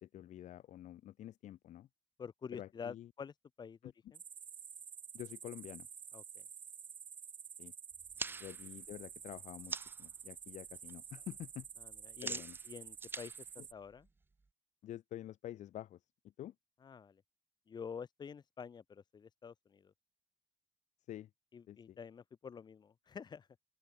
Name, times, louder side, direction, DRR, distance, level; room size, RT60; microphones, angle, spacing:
voice 1, 0.0-1.9 2.5-3.1 3.8-3.9 5.1-5.9 7.6-7.7 8.4-11.7 12.2-12.6 13.6-13.7 14.8-16.5 21.1-21.3 21.7-22.0, left 12 dB, 60° left, 1.4 m, -48 dB
voice 2, 2.2-3.9 6.1-6.4 8.2-8.4 11.8-13.5 13.7-14.1 16.8-17.2 17.7-19.9 21.5-23.5, left 6 dB, 30° left, 3.9 m, -48 dB
sound 1, 4.1-13.7, right 7 dB, 35° right, 1.9 m, -50 dB
sound 2, 7.9-10.1 10.5-10.9 11.2-14.5, right 3 dB, 15° right, 1.2 m, -45 dB
open air
cardioid pair, 165°, 14 cm